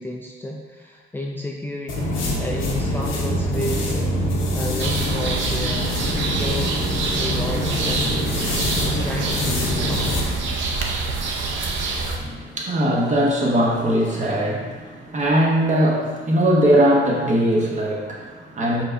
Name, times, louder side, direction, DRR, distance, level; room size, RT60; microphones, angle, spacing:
voice 1, 0.0-4.1 4.5-6.9 7.2-8.1 8.8-10.3, left 1 dB, 10° left, -2 dB, 0.4 m, -32 dB
sound 1, 1.9-10.3, left 1 dB, 90° left, 1.0 m, -25 dB
sound 2, 4.8-12.2, right 4 dB, 70° right, 0.7 m, -26 dB
voice 2, 12.2-18.8, equal, 35° right, -2 dB, 1.0 m, -20 dB
4.5 x 4.4 x 2.6 m, 1.4 s
cardioid pair, 90°, 20 cm